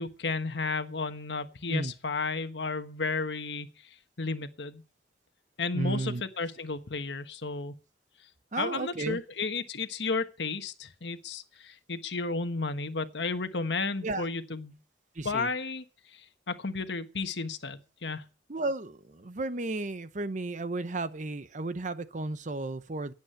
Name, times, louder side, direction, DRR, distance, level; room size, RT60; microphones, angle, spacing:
voice 1, 0.0-3.7 4.2-4.8 5.6-7.7 8.6-14.8 15.2-15.8 16.1-16.2 16.5-18.2, left 4 dB, 75° left, 1.3 m, -33 dB
voice 2, 5.7-6.2 8.5-9.2 14.0-14.3 15.2-15.5 18.5-23.1, right 2 dB, 45° right, 0.8 m, -33 dB
17.0 x 8.4 x 5.8 m
head